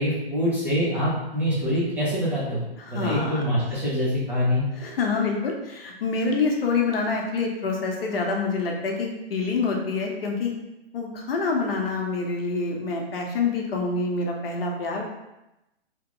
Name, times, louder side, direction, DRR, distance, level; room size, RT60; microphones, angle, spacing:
voice 1, 0.0-2.6 2.9-4.7, equal, 5° right, -10 dB, 0.5 m, -25 dB
voice 2, 2.8-3.4 4.8-10.5 10.9-15.0, left 4 dB, 65° left, 1 dB, 0.8 m, -26 dB
2.9 x 2.2 x 3.8 m, 0.94 s
hypercardioid pair, 135°, 31 cm